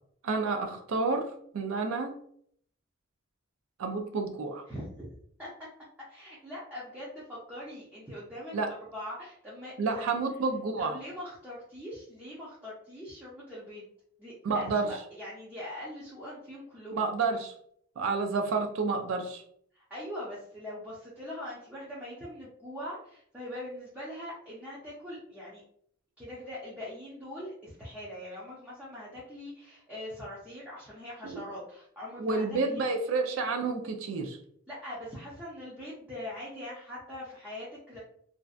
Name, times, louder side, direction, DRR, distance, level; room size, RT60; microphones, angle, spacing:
voice 1, 0.2-1.3 1.5-2.1 3.8-4.6 8.5-8.7 9.8-11.0 14.4-14.9 16.9-17.5 18.0-19.4 31.2-31.4 32.2-34.4, right 4 dB, 80° right, 4 dB, 0.4 m, -29 dB
voice 2, 4.7-5.1 5.4-5.7 6.1-10.1 10.8-13.9 14.2-17.0 19.7-25.6 26.2-32.9 34.7-38.0, left 1 dB, 5° right, -8 dB, 0.5 m, -42 dB
2.6 x 2.1 x 2.3 m, 0.64 s
head